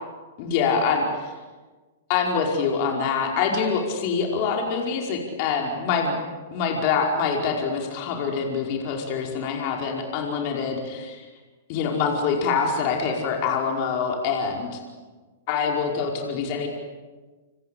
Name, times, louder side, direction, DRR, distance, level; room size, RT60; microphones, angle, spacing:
voice 1, 0.4-1.3 2.1-6.2 6.5-11.3 11.7-14.8 15.5-16.7, left 5 dB, 45° left, 1 dB, 5.2 m, -25 dB
27.5 x 24.5 x 8.5 m, 1.3 s
hypercardioid pair, 140°, 0 cm